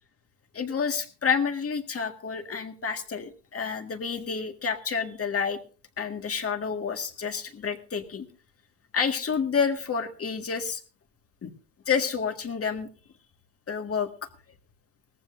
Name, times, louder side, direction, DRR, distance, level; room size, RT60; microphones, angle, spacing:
voice 1, 0.5-5.6 6.0-8.3 8.9-10.8 11.4-11.5 11.9-12.9 13.7-14.1, left 6 dB, 35° left, 6 dB, 1.9 m, -29 dB
19.0 x 15.0 x 2.6 m, 0.37 s
cardioid pair, 125°, 41 cm